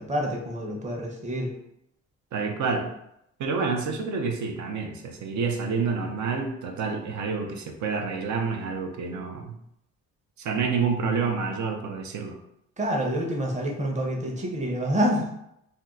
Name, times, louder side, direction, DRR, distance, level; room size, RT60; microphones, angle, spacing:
voice 1, 0.0-1.5 12.8-15.3, equal, 25° right, 0 dB, 0.8 m, -27 dB
voice 2, 2.3-3.0 3.4-9.6 10.4-12.4, right 5 dB, 70° right, 3 dB, 0.6 m, -28 dB
2.7 x 2.2 x 3.6 m, 0.78 s
cardioid pair, 90°, 30 cm